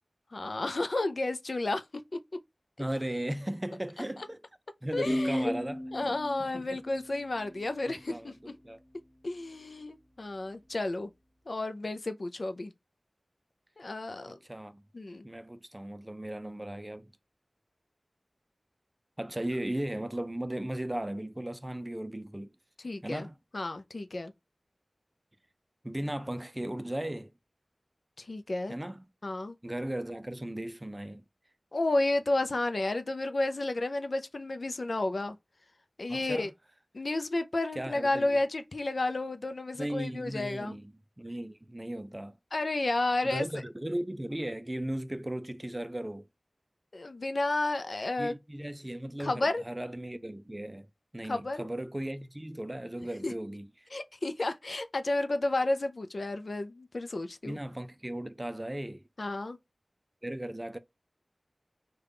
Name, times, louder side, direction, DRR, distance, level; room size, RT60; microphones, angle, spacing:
voice 1, 0.3-1.8 4.9-5.5 5.9-8.5 9.2-11.1 11.5-12.7 13.8-14.3 14.9-15.2 22.8-23.3 23.5-24.3 28.2-28.8 29.2-29.5 31.7-35.4 36.0-36.5 36.9-40.8 42.5-43.5 46.9-48.3 49.2-49.6 51.2-51.7 53.2-53.3 53.9-57.6 59.2-59.6, left 2 dB, 75° left, 0.4 m, -31 dB
voice 2, 2.8-4.4 4.8-6.2 6.5-6.8 7.9-8.8 14.3-14.8 15.2-17.1 19.2-22.5 23.0-23.4 25.8-27.3 28.7-29.1 29.6-31.2 36.1-36.5 37.8-38.4 39.7-42.4 43.2-46.3 48.2-50.9 51.1-53.9 57.4-59.0 60.2-60.8, right 1 dB, 20° right, 0.4 m, -37 dB
sound 1, 5.1-8.5, left 1 dB, 60° left, 1.3 m, -36 dB
3.4 x 2.2 x 3.7 m
wide cardioid pair, 55°, 0 cm